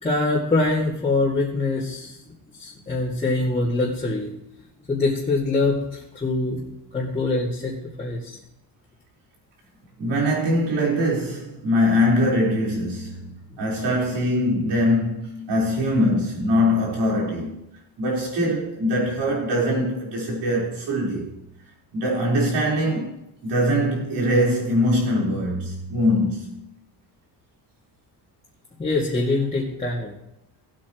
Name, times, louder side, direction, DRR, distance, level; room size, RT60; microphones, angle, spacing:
voice 1, 0.0-2.2 2.6-4.3 4.9-6.6 6.9-8.4 28.8-30.1, left 2 dB, 15° left, 2.5 m, -24 dB
voice 2, 10.0-17.6 18.0-21.2 21.9-23.1 23.4-26.6, left 1 dB, 85° right, 4.6 m, -22 dB
18.5 x 8.8 x 3.1 m
cardioid pair, 155°, 40 cm